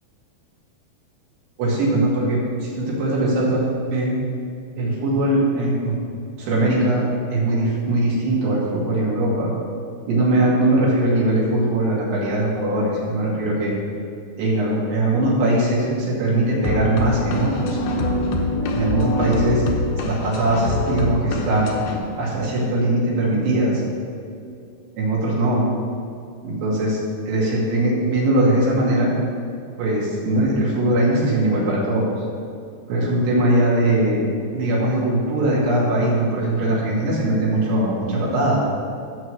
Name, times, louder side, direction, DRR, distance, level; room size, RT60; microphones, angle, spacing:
voice 1, 1.6-4.1 4.8-6.0 6.4-9.5 10.1-13.7 14.4-17.8 18.7-19.6 20.0-21.7 22.2-23.8 25.0-25.7 26.4-27.0 27.3-29.1 29.8-32.1 32.9-34.2 34.5-38.6, right 1 dB, 80° right, -5 dB, 4.2 m, -20 dB
sound 1, 16.6-22.0, left 2 dB, 75° left, 2.6 m, -24 dB
14.0 x 7.8 x 3.2 m, 2.5 s
omnidirectional pair, 4.8 m